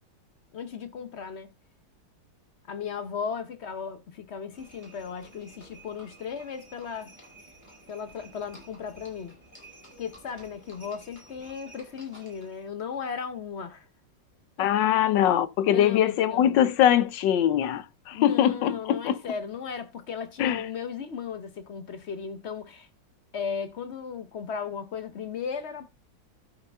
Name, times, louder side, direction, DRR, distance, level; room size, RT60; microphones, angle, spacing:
voice 1, 0.5-1.5 2.7-7.1 7.9-9.4 10.0-13.9 14.6-14.7 15.7-16.6 18.1-22.9 23.3-25.9, left 6 dB, 50° left, 0.8 m, -36 dB
Livestock farm animals working animals, 4.5-12.6, right 1 dB, 10° left, 4.6 m, -52 dB
voice 2, 14.6-19.2 20.4-20.6, left 10 dB, 80° left, 1.3 m, -22 dB
13.0 x 5.6 x 3.4 m
omnidirectional pair, 2.0 m